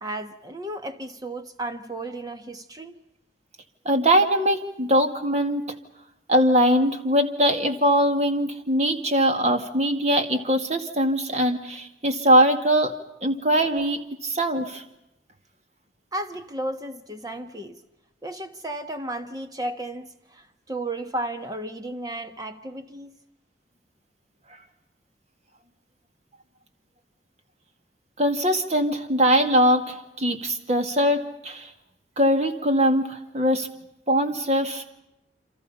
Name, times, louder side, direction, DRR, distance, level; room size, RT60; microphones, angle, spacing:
voice 1, 0.0-3.0 16.1-17.8 18.2-23.1, right 1 dB, 20° right, 1.4 m, -34 dB
voice 2, 3.9-5.6 6.3-12.9 13.2-14.8 28.2-31.7 32.2-33.7 34.1-34.9, equal, 40° right, 2.1 m, -22 dB
29.0 x 26.5 x 5.6 m
head